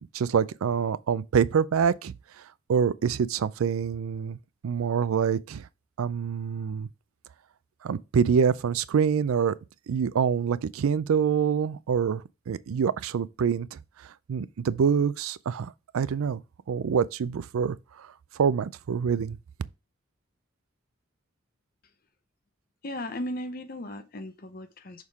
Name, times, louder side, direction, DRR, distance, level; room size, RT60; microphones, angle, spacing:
voice 1, 0.1-2.1 2.7-4.4 4.6-5.6 6.0-6.9 7.8-9.6 9.9-13.8 14.3-16.4 16.7-18.1 18.4-19.4, right 7 dB, 85° right, 0.4 m, -26 dB
voice 2, 22.8-25.1, left 1 dB, 45° left, 0.7 m, -36 dB
6.4 x 3.6 x 4.7 m
head